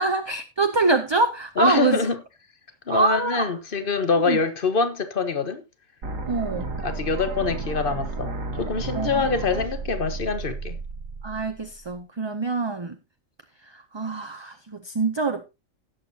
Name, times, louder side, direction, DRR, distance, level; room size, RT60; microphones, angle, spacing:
voice 1, 0.0-2.0 2.9-3.5 4.2-4.4 6.3-6.7 8.9-9.3 11.2-13.0 13.7-15.4, right 3 dB, 30° right, 0.6 m, -25 dB
voice 2, 1.6-2.2 2.9-5.6 6.6-10.8, left 4 dB, 45° left, 1.4 m, -25 dB
sound 1, 6.0-12.0, right 3 dB, 85° right, 1.9 m, -32 dB
17.0 x 7.3 x 2.8 m
omnidirectional pair, 1.3 m